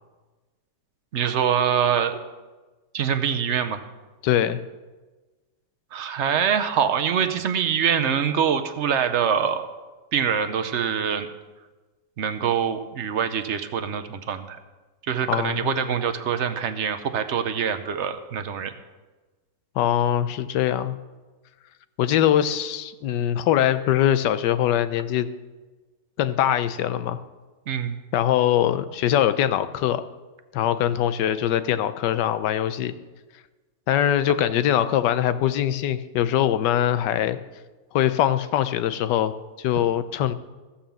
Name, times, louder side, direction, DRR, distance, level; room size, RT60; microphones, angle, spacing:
voice 1, 1.1-2.2 2.9-3.8 5.9-9.7 10.1-11.3 12.2-14.6 15.1-18.7 27.7-28.0, right 8 dB, 60° right, 8 dB, 0.8 m, -24 dB
voice 2, 4.2-4.6 15.3-15.7 19.8-21.0 22.0-25.3 26.2-27.2 28.1-30.0 30.5-32.9 33.9-37.4 37.9-40.3, left 11 dB, 85° left, 13 dB, 1.3 m, -22 dB
14.5 x 5.7 x 7.0 m, 1.2 s
omnidirectional pair, 1.8 m